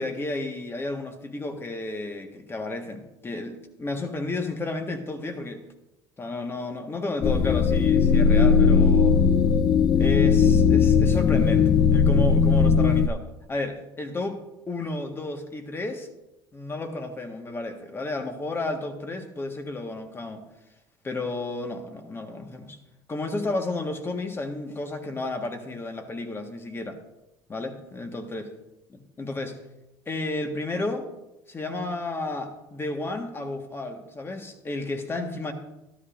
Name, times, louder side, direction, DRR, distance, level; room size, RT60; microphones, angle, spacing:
voice 1, 0.0-5.6 6.2-9.2 10.0-14.4 14.7-16.1 16.5-20.5 21.0-22.8 23.1-27.0 27.5-28.5 28.9-29.6 30.0-31.1 31.5-35.5, left 2 dB, 25° left, 5 dB, 1.5 m, -32 dB
sound 1, 7.2-13.1, left 6 dB, 45° left, 0.5 m, -18 dB
13.0 x 12.5 x 2.6 m, 0.94 s
supercardioid pair, 95°, 10 cm